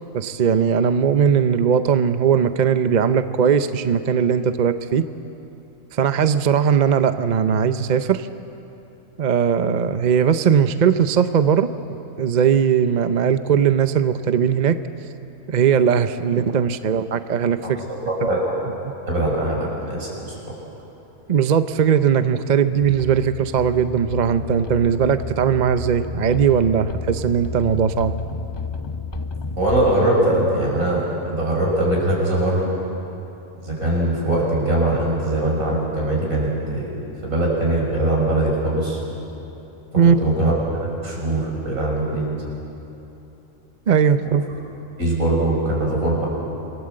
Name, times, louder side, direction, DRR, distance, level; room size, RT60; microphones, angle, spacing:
voice 1, 0.1-5.1 5.9-8.3 9.2-11.7 12.2-14.8 15.5-17.8 18.2-18.3 21.3-28.1 40.0-40.2 43.9-44.4, right 7 dB, 45° right, 10 dB, 0.6 m, -19 dB
voice 2, 17.6-18.6 19.1-20.4 29.6-32.7 33.6-39.0 40.0-42.3 45.0-46.3, right 1 dB, 80° right, -3 dB, 6.1 m, -22 dB
sound 1, 22.8-29.9, left 4 dB, 30° left, 0.4 m, -32 dB
27.0 x 19.5 x 7.7 m, 2.9 s
omnidirectional pair, 1.4 m